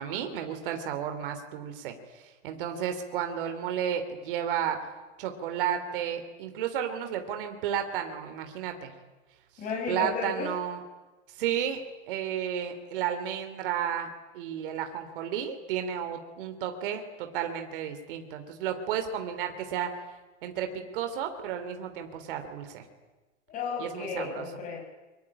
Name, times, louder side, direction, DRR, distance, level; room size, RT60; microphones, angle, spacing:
voice 1, 0.0-4.8 5.2-8.9 9.9-10.8 11.4-19.9 20.4-22.8 23.8-24.4, right 9 dB, 45° right, 6 dB, 3.3 m, -32 dB
voice 2, 9.6-10.5 23.5-24.8, left 4 dB, 20° left, 2 dB, 6.1 m, -33 dB
23.5 x 22.5 x 9.9 m, 1.2 s
supercardioid pair, 165°, 37 cm